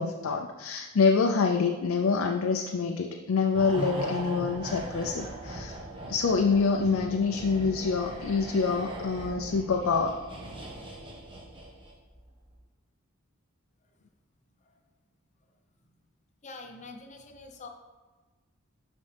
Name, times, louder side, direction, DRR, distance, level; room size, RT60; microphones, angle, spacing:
voice 1, 0.0-5.7 6.1-10.2, left 4 dB, 70° left, 3 dB, 0.5 m, -26 dB
sound 1, 3.5-12.1 12.4-12.5, right 1 dB, 25° right, 1.2 m, -39 dB
voice 2, 16.4-17.7, left 3 dB, 35° left, 3 dB, 0.8 m, -45 dB
11.5 x 4.2 x 3.4 m, 1.3 s
head